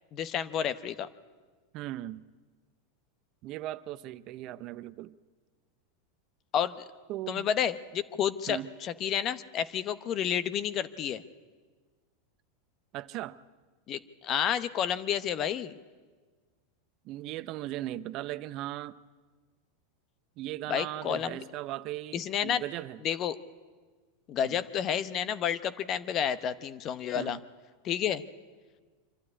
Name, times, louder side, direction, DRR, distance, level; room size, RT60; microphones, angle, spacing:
voice 1, 0.1-1.1 6.5-6.8 7.3-11.2 13.9-15.8 20.7-21.4 22.1-22.6 23.0-23.4 24.3-27.4 27.8-28.2, left 9 dB, 40° left, 15 dB, 0.9 m, -30 dB
voice 2, 1.7-2.2 3.4-5.2 7.1-7.5 8.5-8.7 12.9-13.4 17.0-19.0 20.4-23.0 24.4-24.6 27.1-27.4, right 14 dB, 50° right, 15 dB, 0.6 m, -38 dB
25.0 x 12.5 x 9.7 m, 1.4 s
hypercardioid pair, 115°, 0 cm